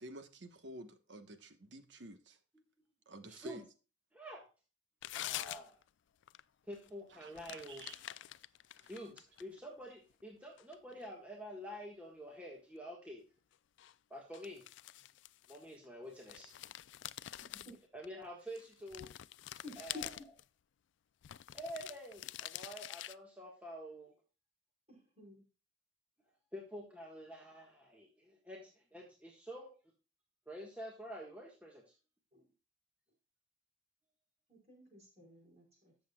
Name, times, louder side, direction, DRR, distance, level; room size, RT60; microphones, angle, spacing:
voice 1, 0.0-2.4 3.1-3.6 7.1-8.0 8.8-8.9, right 1 dB, 70° right, 1.2 m, -50 dB
voice 2, 3.3-3.6 4.1-4.5 5.1-5.8 6.7-7.8 8.7-13.2 14.1-14.6 15.5-16.5 17.9-19.1 19.8-20.1 21.5-24.1 26.5-29.7 30.5-31.9, equal, 5° right, 1.5 m, -48 dB
sound 1, 5.0-5.9 6.2-6.4 6.7-6.9 7.4-9.6 10.1-11.1 13.8-13.9 14.3-15.8 16.2-18.1 18.5-20.4 21.2-23.2, left 14 dB, 75° left, 0.3 m, -46 dB
voice 3, 17.4-17.8 19.6-20.1 24.9-25.4 32.3-32.4 34.5-35.9, left 2 dB, 35° right, 4.8 m, -52 dB
14.0 x 6.9 x 2.3 m
head